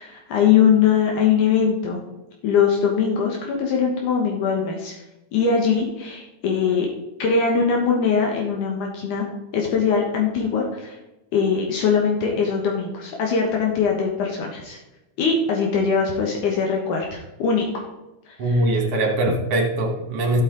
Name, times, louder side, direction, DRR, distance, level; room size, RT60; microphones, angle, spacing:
voice 1, 0.0-2.0 2.4-5.0 5.3-6.9 7.2-9.3 9.5-11.0 11.3-14.8 15.2-17.8 18.3-18.6, left 6 dB, 75° left, 0 dB, 2.8 m, -21 dB
voice 2, 18.4-20.4, right 1 dB, 50° right, 2 dB, 2.4 m, -22 dB
14.0 x 8.3 x 3.8 m, 1.0 s
omnidirectional pair, 3.7 m